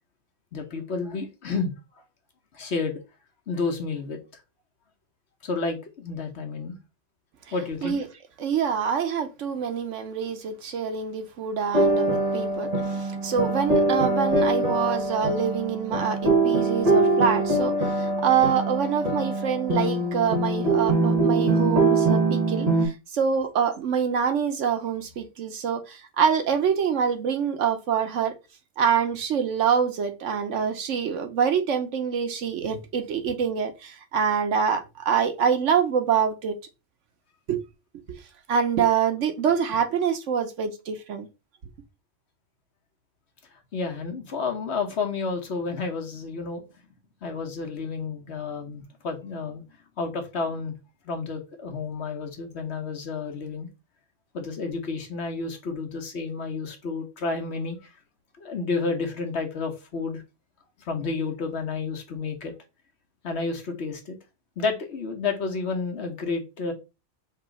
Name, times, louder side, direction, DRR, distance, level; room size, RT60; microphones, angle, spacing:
voice 1, 0.5-1.7 2.5-3.0 3.5-4.4 5.4-6.8 7.5-8.0 43.5-46.6 47.2-49.6 50.0-50.7 51.0-53.7 54.3-58.0 58.4-60.2 60.8-62.5 63.2-64.2 64.6-66.7, left 4 dB, 65° left, 1.3 m, -30 dB
voice 2, 8.4-28.4 28.8-36.6 37.5-37.6 38.1-38.2 38.5-41.3, right 7 dB, 90° right, 1.2 m, -25 dB
sound 1, 11.7-22.9, right 2 dB, 35° right, 1.1 m, -23 dB
3.6 x 3.0 x 4.7 m
omnidirectional pair, 1.2 m